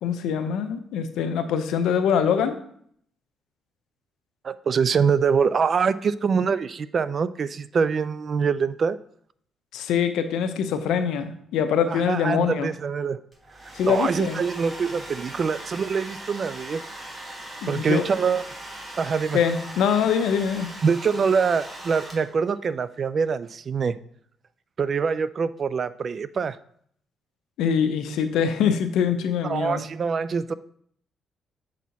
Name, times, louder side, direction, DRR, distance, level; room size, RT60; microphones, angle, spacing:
voice 1, 0.0-2.6 9.7-12.7 13.7-14.4 17.6-18.0 19.3-20.7 27.6-29.8, left 7 dB, 85° left, 9 dB, 0.6 m, -24 dB
voice 2, 4.4-9.0 11.9-13.2 13.9-16.8 17.7-18.4 19.0-19.4 20.8-24.0 24.8-26.6 29.4-30.5, right 6 dB, 45° right, 15 dB, 0.3 m, -24 dB
Domestic sounds home sounds, 13.3-22.5, right 1 dB, 20° right, 1.8 m, -40 dB
7.3 x 4.2 x 4.0 m, 0.66 s
cardioid pair, 90°, 0 cm